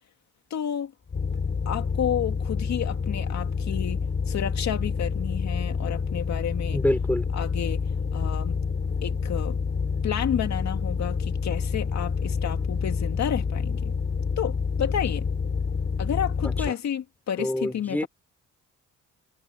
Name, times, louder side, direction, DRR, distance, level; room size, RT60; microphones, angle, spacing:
voice 1, 0.5-0.9 1.7-6.8 7.3-7.8 8.1-8.6 9.0-9.6 10.0-13.9 14.4-15.2 16.0-18.1, left 9 dB, 65° left, 2.4 m, -31 dB
sound 1, 1.1-16.7, left 5 dB, 35° left, 5.6 m, -28 dB
voice 2, 6.7-7.3 17.4-18.1, left 1 dB, 5° left, 5.2 m, -26 dB
cardioid pair, 90°, 30 cm